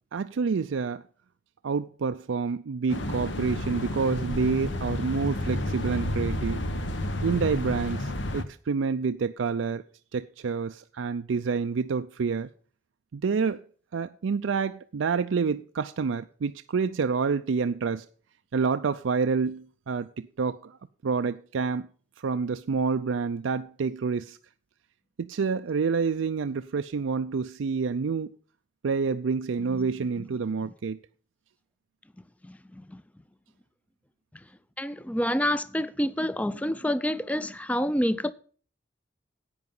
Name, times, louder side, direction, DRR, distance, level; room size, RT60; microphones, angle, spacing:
voice 1, 0.1-1.0 1.6-6.6 7.2-9.8 10.1-12.5 13.1-13.6 13.9-18.1 18.5-20.8 21.0-21.9 22.2-24.4 25.2-28.3 28.8-31.0, right 5 dB, 90° right, 0.4 m, -28 dB
sound 1, 2.9-8.4, left 1 dB, 70° left, 1.2 m, -31 dB
voice 2, 32.4-33.0 34.8-38.3, equal, 5° left, 0.5 m, -28 dB
11.0 x 8.7 x 5.4 m
head